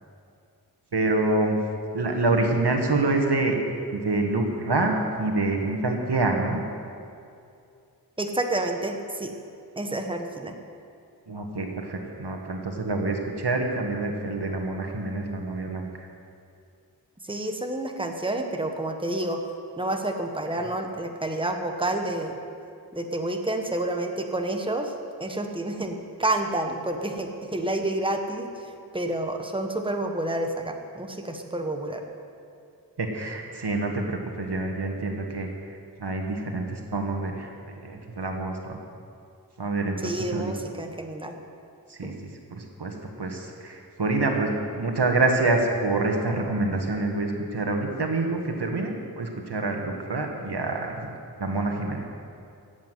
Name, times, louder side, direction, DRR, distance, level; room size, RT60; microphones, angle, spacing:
voice 1, 0.9-1.6 1.9-3.6 3.9-6.6 11.3-15.9 33.0-35.5 36.0-38.8 39.6-40.5 41.9-42.1 42.5-51.1 51.4-52.0, right 2 dB, 85° right, 3 dB, 1.7 m, -26 dB
voice 2, 8.2-9.3 9.8-10.6 17.2-19.4 19.8-22.4 22.9-24.9 25.2-32.0 40.0-41.4 42.0-42.2, right 1 dB, 15° right, 4 dB, 1.3 m, -29 dB
14.5 x 8.3 x 9.3 m, 2.5 s
wide cardioid pair, 65°, 39 cm